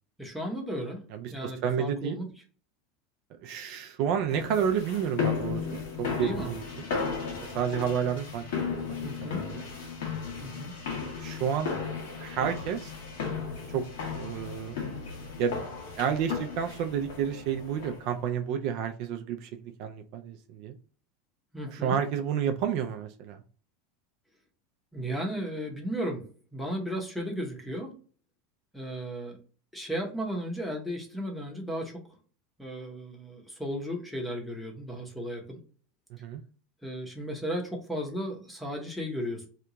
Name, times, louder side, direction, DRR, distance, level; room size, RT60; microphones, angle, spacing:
voice 1, 0.2-1.0 1.3-2.3 6.2-6.5 9.0-9.4 10.4-10.7 21.5-22.0 24.9-26.2 26.5-27.9 28.7-29.4 29.7-32.0 32.6-35.6 36.8-39.5, equal, 5° left, 1 dB, 0.7 m, -35 dB
voice 2, 1.1-2.2 3.4-6.8 7.5-8.5 8.8-9.6 11.2-12.9 13.7-13.8 14.1-14.8 15.4-15.6 16.0-19.5 19.8-20.7 21.7-23.4 36.1-36.4, right 8 dB, 45° right, 5 dB, 0.3 m, -30 dB
sound 1, 4.3-18.2, left 5 dB, 85° left, 1.1 m, -35 dB
2.8 x 2.2 x 3.7 m, 0.41 s
supercardioid pair, 170°, 0 cm